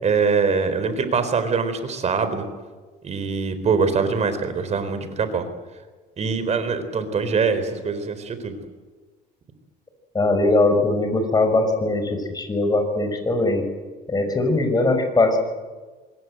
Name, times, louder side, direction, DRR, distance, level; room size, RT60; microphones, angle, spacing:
voice 1, 0.0-2.5 3.0-5.5 6.2-8.6, right 5 dB, 40° right, 10 dB, 4.2 m, -23 dB
voice 2, 10.1-13.6 14.1-15.4, left 2 dB, 25° left, 6 dB, 5.9 m, -20 dB
26.0 x 21.0 x 8.0 m, 1.3 s
cardioid pair, 110°, 17 cm